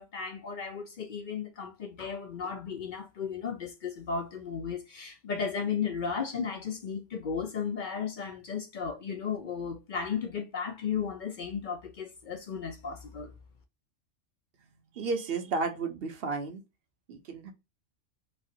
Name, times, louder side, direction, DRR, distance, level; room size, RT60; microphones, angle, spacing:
voice 1, 0.0-13.3, left 6 dB, 60° left, 0.5 m, -35 dB
voice 2, 14.9-16.6 17.1-17.5, right 4 dB, 55° right, 0.9 m, -32 dB
3.1 x 2.4 x 2.7 m
omnidirectional pair, 1.3 m